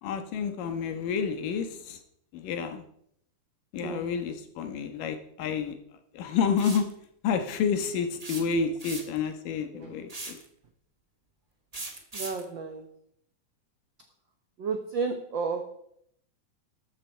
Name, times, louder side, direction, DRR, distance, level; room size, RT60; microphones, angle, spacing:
voice 1, 0.0-2.0 2.3-2.8 3.7-5.8 6.1-6.9 7.2-10.4, left 6 dB, 85° left, 7 dB, 3.0 m, -29 dB
sound 1, 6.6-6.9 8.2-9.3 10.1-10.5 11.7-12.4, right 2 dB, 30° right, 0.7 m, -39 dB
voice 2, 12.1-12.9 14.6-15.8, right 4 dB, 75° right, 6 dB, 1.1 m, -32 dB
13.5 x 12.0 x 4.5 m, 0.71 s
omnidirectional pair, 3.8 m